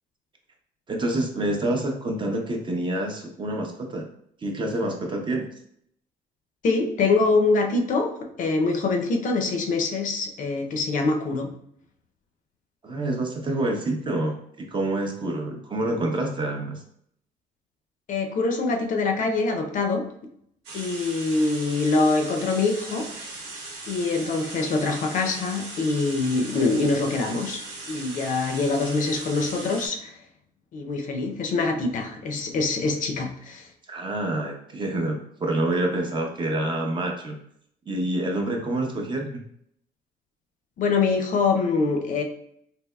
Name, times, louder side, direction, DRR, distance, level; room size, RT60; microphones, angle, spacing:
voice 1, 0.9-4.0 4.4-5.5 12.8-16.8 33.9-37.3 37.9-39.4, right 1 dB, 30° right, 2 dB, 0.6 m, -27 dB
voice 2, 6.6-11.5 18.1-20.1 20.7-23.4 23.9-30.2 30.7-33.7 40.8-42.2, left 3 dB, 50° left, 4 dB, 0.5 m, -24 dB
sound 1, 20.6-29.9, right 2 dB, 80° right, 0.9 m, -38 dB
3.3 x 2.8 x 2.2 m, 0.69 s
cardioid pair, 110°, 17 cm